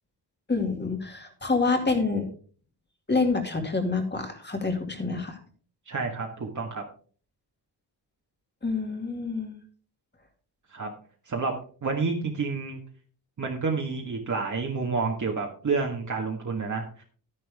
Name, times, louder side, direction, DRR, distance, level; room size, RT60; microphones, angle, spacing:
voice 1, 0.5-2.3 3.1-5.4 8.6-9.5, left 4 dB, 25° left, 4 dB, 2.4 m, -27 dB
voice 2, 5.9-6.8 10.7-10.9 11.3-11.5 11.8-12.8 13.4-17.0, right 4 dB, 45° right, 0 dB, 1.7 m, -29 dB
12.0 x 10.5 x 3.6 m, 0.41 s
wide cardioid pair, 145°, 40 cm